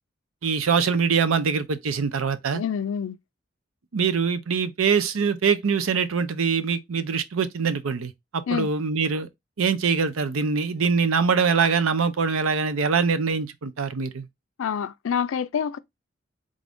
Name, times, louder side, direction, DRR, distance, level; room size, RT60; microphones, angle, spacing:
voice 1, 0.4-2.6 3.9-9.3 9.6-14.3, right 5 dB, 90° right, 0.6 m, -23 dB
voice 2, 2.5-3.2 8.5-8.7 14.6-15.8, left 7 dB, 75° left, 0.4 m, -27 dB
3.6 x 2.6 x 3.4 m
head